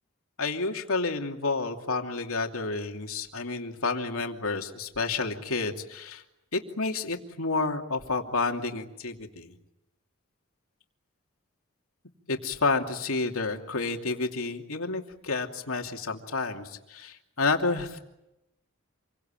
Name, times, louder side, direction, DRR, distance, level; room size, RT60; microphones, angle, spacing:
voice 1, 0.4-6.2 6.5-9.5 12.3-18.0, left 3 dB, 75° left, 3 dB, 2.7 m, -30 dB
28.0 x 23.5 x 9.0 m, 0.91 s
head